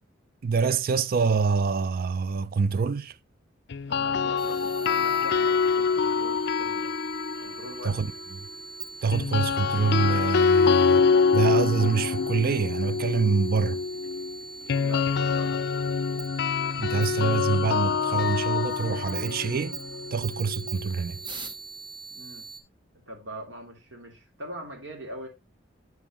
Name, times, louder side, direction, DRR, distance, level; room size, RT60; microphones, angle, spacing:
voice 1, 0.4-3.1 7.8-8.1 9.0-11.0 11.3-13.8 16.8-19.8 20.1-21.2, right 5 dB, 50° right, 0.4 m, -26 dB
sound 1, 3.7-7.9 9.1-21.0, left 5 dB, 65° left, 0.5 m, -25 dB
voice 2, 3.9-6.9 7.4-8.2 14.8-15.6 22.1-22.5 23.1-25.3, right 1 dB, 70° right, 2.6 m, -42 dB
sound 2, 4.4-22.6, right 3 dB, 25° right, 1.0 m, -42 dB
7.8 x 7.2 x 2.9 m
head